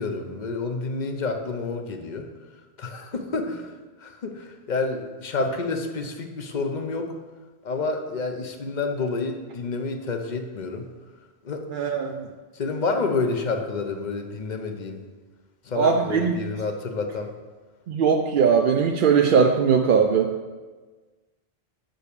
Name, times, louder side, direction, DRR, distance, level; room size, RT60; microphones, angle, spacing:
voice 1, 0.0-2.3 2.8-7.1 7.6-10.9 11.4-11.9 12.5-15.0 15.6-17.3, left 3 dB, 50° left, 5 dB, 0.8 m, -29 dB
voice 2, 11.7-12.3 15.8-16.4 17.9-20.3, right 6 dB, 60° right, 3 dB, 0.6 m, -20 dB
6.0 x 5.1 x 6.7 m, 1.3 s
omnidirectional pair, 1.1 m